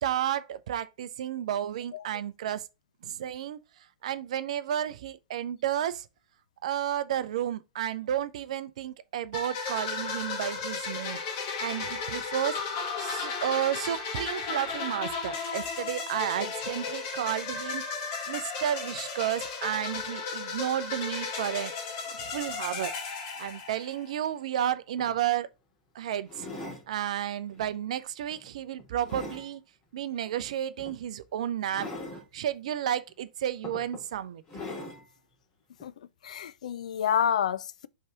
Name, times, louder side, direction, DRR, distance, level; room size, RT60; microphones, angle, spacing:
voice 1, 0.0-2.6 3.0-3.6 4.0-6.0 6.6-11.2 11.6-12.6 13.0-21.7 22.0-22.9 23.4-25.5 25.9-26.5 26.9-29.6 29.9-31.9 32.3-34.4, right 10 dB, 60° right, 0.7 m, -32 dB
sound 1, 9.3-24.1, left 5 dB, 40° left, 2.2 m, -35 dB
sound 2, 25.0-25.2 26.3-26.9 27.5-27.8 28.3-29.5 30.8-31.0 31.7-32.2 33.1-33.2 33.6-34.1 34.5-35.0 35.8-35.9, left 2 dB, 20° left, 3.2 m, -41 dB
voice 2, 36.2-37.9, left 9 dB, 65° left, 0.5 m, -28 dB
5.5 x 4.7 x 3.8 m
figure-of-eight pair, 100°, 4 cm